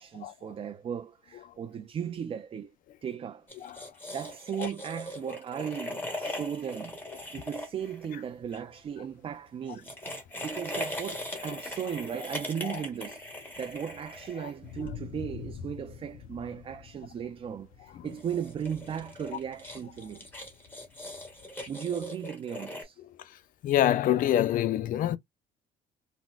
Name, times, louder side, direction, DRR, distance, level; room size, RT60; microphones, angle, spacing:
voice 1, 0.0-2.7 3.0-3.5 4.1-7.0 7.3-9.9 10.4-20.3 21.7-23.0, right 8 dB, 35° right, 0.4 m, -36 dB
sound 1, 3.5-8.6 9.7-14.9 18.1-22.8, left 1 dB, 10° left, 1.3 m, -40 dB
sound 2, 6.8-22.0, left 7 dB, 85° left, 0.8 m, -50 dB
voice 2, 23.6-25.2, left 12 dB, 55° left, 0.4 m, -26 dB
3.9 x 2.1 x 2.3 m
cardioid pair, 110°, 17 cm